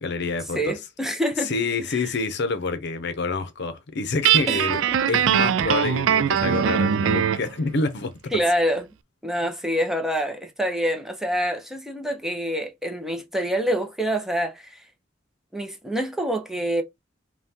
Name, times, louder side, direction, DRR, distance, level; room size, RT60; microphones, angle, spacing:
voice 1, 0.0-0.7 1.4-4.8 5.1-8.3, left 3 dB, 60° left, 0.7 m, -27 dB
voice 2, 0.5-1.5 1.9-2.1 4.5-4.6 8.3-8.9 9.2-14.8 15.5-16.8, equal, ahead, 0.7 m, -26 dB
Guitar, 4.2-7.5, right 9 dB, 85° right, 0.3 m, -21 dB
5.5 x 2.3 x 2.8 m
head